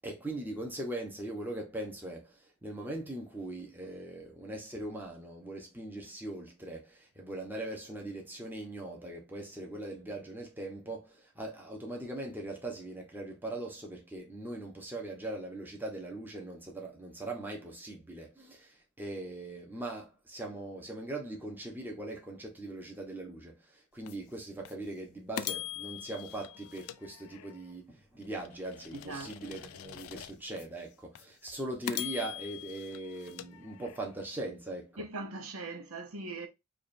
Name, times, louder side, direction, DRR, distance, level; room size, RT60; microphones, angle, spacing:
voice 1, 0.0-2.3 2.6-23.6 23.9-35.0, right 2 dB, 10° right, 0.9 m, -40 dB
sound 1, 24.1-24.2 24.6-24.7 25.4-27.7 28.2-30.7 31.2-31.3 31.9-34.2, left 12 dB, 90° left, 0.4 m, -42 dB
voice 2, 28.9-29.6 35.0-36.5, right 3 dB, 85° right, 0.8 m, -41 dB
4.9 x 2.5 x 2.6 m
head